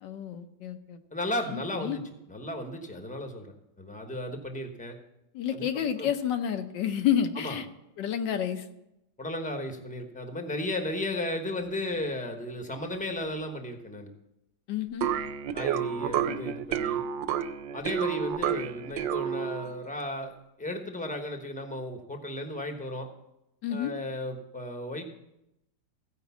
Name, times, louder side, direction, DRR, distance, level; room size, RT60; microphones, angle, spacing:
voice 1, 0.0-1.0 1.5-2.0 5.3-7.7 8.0-8.7 14.7-15.1 23.6-23.9, left 9 dB, 75° left, 7 dB, 1.4 m, -30 dB
voice 2, 1.1-2.0 2.3-3.5 3.8-5.0 5.5-6.1 7.4-7.6 9.2-14.1 15.5-17.0 17.7-23.1 23.7-25.0, left 1 dB, 5° left, 5 dB, 0.7 m, -35 dB
sound 1, 15.0-19.8, right 9 dB, 90° right, 1.3 m, -30 dB
15.0 x 5.2 x 7.0 m, 0.87 s
omnidirectional pair, 2.0 m